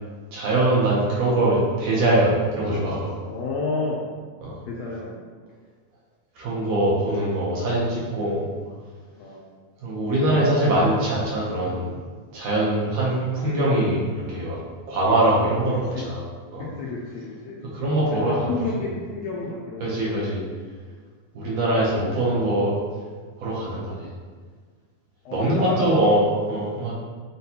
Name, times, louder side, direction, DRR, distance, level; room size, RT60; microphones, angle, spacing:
voice 1, 0.3-3.1 4.4-4.6 6.4-8.5 9.8-11.9 12.3-14.6 14.9-16.2 16.5-16.6 17.7-18.5 19.8-20.4 21.3-22.8 23.4-24.1 25.3-26.9, right 1 dB, 70° right, -6 dB, 1.7 m, -22 dB
voice 2, 3.2-4.0 4.6-5.2 9.2-9.4 15.9-16.1 16.6-17.6 18.1-20.0 20.4-20.5 21.3-21.5 25.2-26.0, left 3 dB, 80° left, -5 dB, 1.5 m, -31 dB
6.5 x 2.3 x 2.8 m, 1.5 s
omnidirectional pair, 3.4 m